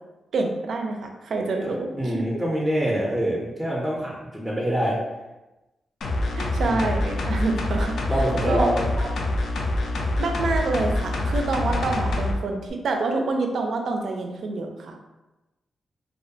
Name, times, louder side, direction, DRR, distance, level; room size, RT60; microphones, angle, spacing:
voice 1, 0.3-1.9 2.1-2.2 6.3-7.9 8.5-8.7 9.0-9.1 10.2-15.0, right 3 dB, 70° right, 3 dB, 0.3 m, -27 dB
voice 2, 1.6-5.0 6.6-6.9 8.1-8.9, equal, ahead, -4 dB, 0.4 m, -25 dB
sound 1, 6.0-12.3 12.7-12.8, left 2 dB, 75° left, 0.3 m, -26 dB
2.2 x 2.1 x 2.6 m, 1.0 s
cardioid pair, 95°, 0 cm